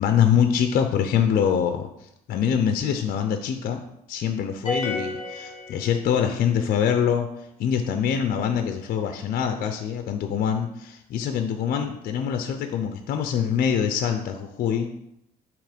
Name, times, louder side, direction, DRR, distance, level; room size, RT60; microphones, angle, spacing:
voice 1, 0.0-1.9 2.3-3.8 4.1-7.3 7.6-14.9, left 8 dB, 60° left, 7 dB, 0.6 m, -24 dB
sound 1, 4.6-6.4, left 2 dB, 25° left, 1.6 m, -31 dB
7.1 x 3.1 x 5.0 m, 0.79 s
cardioid pair, 110°, 17 cm